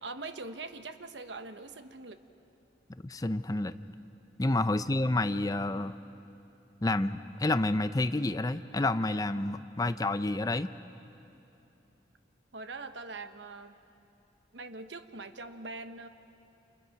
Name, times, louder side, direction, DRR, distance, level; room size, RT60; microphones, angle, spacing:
voice 1, 0.0-2.2 4.7-4.9 12.5-13.7 14.5-16.1, right 3 dB, 85° right, 9 dB, 1.1 m, -42 dB
voice 2, 2.9-3.7 4.4-6.0 6.8-10.7, left 2 dB, 20° left, 12 dB, 0.5 m, -29 dB
29.0 x 28.5 x 5.9 m, 2.9 s
head